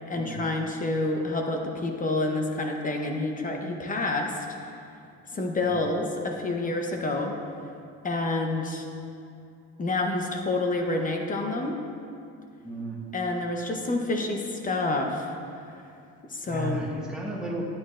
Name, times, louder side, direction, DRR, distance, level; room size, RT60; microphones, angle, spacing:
voice 1, 0.1-4.4 5.3-7.4 8.0-8.8 9.8-11.8 13.1-15.3 16.3-16.8, left 2 dB, 25° left, 3 dB, 0.9 m, -28 dB
voice 2, 5.6-5.9 12.6-13.1 16.4-17.6, right 1 dB, ahead, -4 dB, 1.6 m, -35 dB
11.0 x 8.6 x 2.5 m, 2.5 s
supercardioid pair, 105°, 31 cm